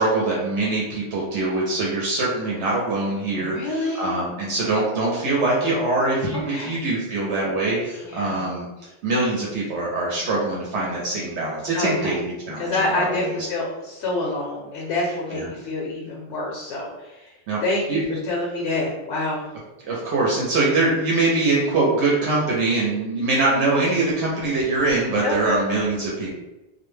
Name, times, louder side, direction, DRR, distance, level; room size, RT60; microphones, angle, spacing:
voice 1, 0.0-8.7 9.0-13.4 15.3-15.5 17.5-17.6 17.9-18.0 19.9-26.3, right 2 dB, 75° right, -4 dB, 0.9 m, -23 dB
voice 2, 3.3-4.1 6.3-6.8 8.0-8.4 11.7-12.2 12.6-17.3 17.6-19.5 25.2-25.6, left 2 dB, 75° left, -2 dB, 0.8 m, -27 dB
2.2 x 2.1 x 3.1 m, 1.0 s
omnidirectional pair, 1.2 m